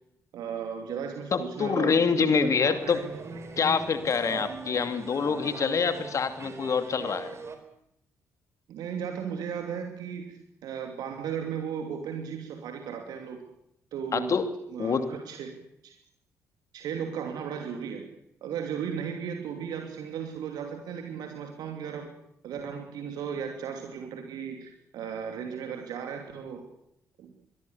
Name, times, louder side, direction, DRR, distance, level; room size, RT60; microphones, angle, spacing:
voice 1, 0.3-3.1 3.3-3.4 8.7-13.4 13.9-14.3 14.7-15.6 15.8-15.9 16.7-18.0 18.4-22.1 22.4-26.6 27.2-27.3, right 7 dB, 60° right, 4 dB, 2.8 m, -36 dB
voice 2, 1.3-3.0 3.6-7.3 14.1-14.4 14.8-15.1, left 5 dB, 45° left, 10 dB, 2.6 m, -26 dB
sound 1, 2.7-7.6, right 4 dB, 35° right, 4.3 m, -41 dB
24.0 x 21.5 x 7.1 m, 0.77 s
figure-of-eight pair, 40°, 8 cm